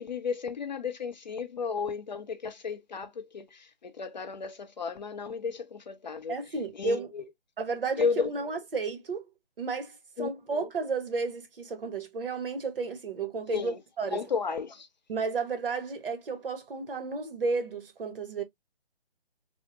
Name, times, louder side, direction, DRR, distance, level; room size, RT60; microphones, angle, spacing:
voice 1, 0.0-6.4 6.8-7.2 8.0-8.3 10.2-10.7 13.5-13.8 14.1-14.9, left 5 dB, 45° left, 0.6 m, -33 dB
voice 2, 6.3-7.1 7.6-9.3 9.6-14.2 15.1-18.4, right 4 dB, 60° right, 1.2 m, -32 dB
3.5 x 2.1 x 2.7 m
hypercardioid pair, 165°, 32 cm